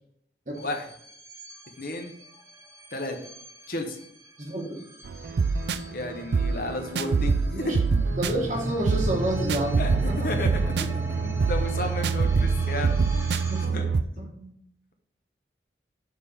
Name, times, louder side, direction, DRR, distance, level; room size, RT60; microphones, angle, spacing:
voice 1, 0.6-0.9 1.8-2.1 2.9-3.2 3.7-4.0 5.9-8.0 9.8-10.5 10.8-11.0 11.5-12.9 13.7-13.9, left 1 dB, 50° left, 4 dB, 1.0 m, -32 dB
sound 1, 0.6-13.7, equal, 15° right, 1.0 m, -37 dB
voice 2, 4.4-4.8 7.5-7.8 8.2-10.3 13.5-13.8 14.2-14.5, right 1 dB, 45° right, -1 dB, 1.3 m, -30 dB
sound 2, 5.0-14.0, right 4 dB, 75° right, 0.4 m, -25 dB
6.5 x 3.7 x 5.0 m, 0.74 s
head